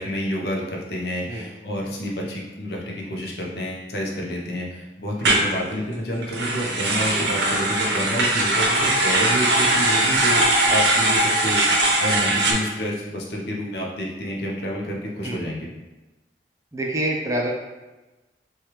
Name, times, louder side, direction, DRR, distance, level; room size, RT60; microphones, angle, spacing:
voice 1, 0.0-10.4 10.7-15.7, equal, 70° left, -2 dB, 0.6 m, -29 dB
sound 1, 5.2-5.5 6.2-12.5, right 2 dB, 85° right, 0.6 m, -20 dB
voice 2, 16.7-17.5, right 1 dB, 20° right, -1 dB, 0.3 m, -26 dB
3.2 x 2.3 x 2.9 m, 1.1 s
head